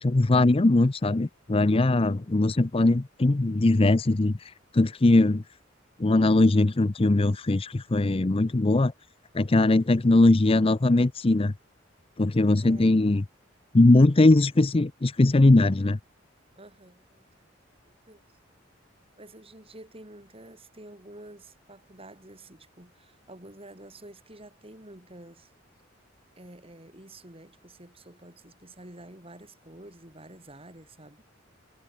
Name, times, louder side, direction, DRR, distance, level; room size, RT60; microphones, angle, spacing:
voice 1, 0.0-4.3 4.7-5.4 6.0-8.9 9.3-11.5 12.2-13.2 13.7-16.0, left 2 dB, 30° left, 0.6 m, -20 dB
voice 2, 9.7-10.0 12.6-13.2 16.6-17.5 17.8-18.2 19.2-25.5 26.4-31.2, right 1 dB, 30° right, 6.0 m, -49 dB
head